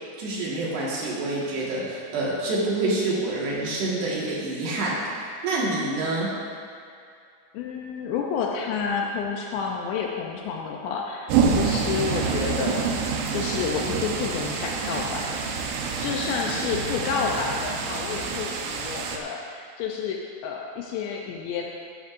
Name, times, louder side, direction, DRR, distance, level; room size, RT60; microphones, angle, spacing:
voice 1, 0.2-6.3, right 2 dB, 65° right, -6 dB, 3.6 m, -27 dB
voice 2, 7.5-21.7, left 6 dB, 80° left, 0 dB, 2.6 m, -30 dB
sound 1, 11.3-19.2, right 5 dB, 85° right, 3.4 m, -27 dB
15.0 x 11.0 x 2.6 m, 2.4 s
omnidirectional pair, 5.5 m